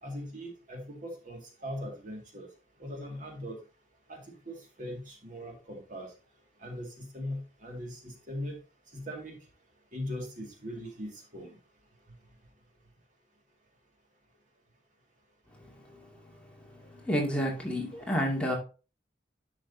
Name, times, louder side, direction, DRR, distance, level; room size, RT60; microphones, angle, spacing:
voice 1, 0.0-2.5 2.8-3.6 4.1-6.1 6.6-8.6 8.9-9.4 9.9-11.6, equal, 45° right, 2.1 m, -40 dB
voice 2, 17.0-18.5, equal, 5° left, 2.3 m, -29 dB
11.0 x 6.2 x 2.7 m
head